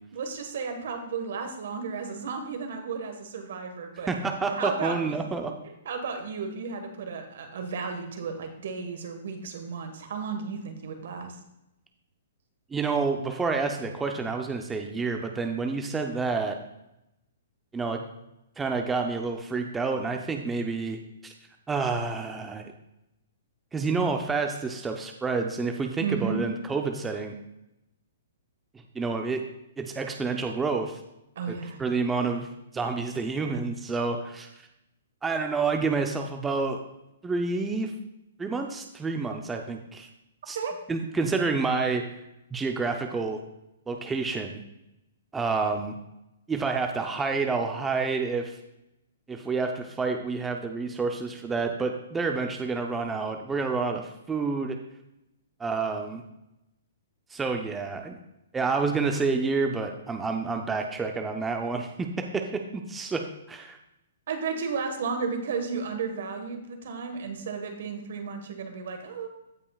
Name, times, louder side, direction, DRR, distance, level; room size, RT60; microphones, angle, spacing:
voice 1, 0.1-4.1 4.6-5.0 5.8-11.3 26.0-26.4 31.3-31.8 40.5-40.7 64.3-69.3, right 5 dB, 65° right, 5 dB, 1.5 m, -33 dB
voice 2, 4.1-5.5 12.7-16.6 17.7-18.1 18.6-21.3 21.7-22.7 23.7-27.3 28.9-29.4 29.8-31.0 31.5-32.5 32.7-34.7 35.2-36.8 37.2-37.9 38.4-40.1 40.5-40.6 40.9-42.0 42.5-43.4 43.9-44.6 45.3-45.9 46.5-48.6 49.3-54.8 55.6-56.2 57.3-58.2 58.5-62.5 62.7-63.2 63.5-63.8, right 4 dB, 10° right, 3 dB, 0.6 m, -29 dB
15.5 x 5.4 x 2.4 m, 0.88 s
hypercardioid pair, 145°, 0 cm